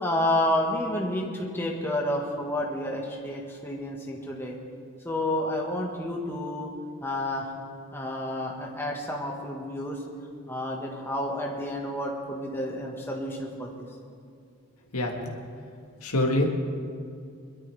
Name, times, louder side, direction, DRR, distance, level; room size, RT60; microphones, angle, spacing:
voice 1, 0.0-4.5 5.0-6.7 7.0-7.5 7.9-10.0 10.5-13.8, left 1 dB, 10° left, -2 dB, 1.7 m, -30 dB
voice 2, 14.9-15.4 16.0-16.5, left 1 dB, 90° left, 1 dB, 1.7 m, -25 dB
22.5 x 12.5 x 3.5 m, 2.3 s
head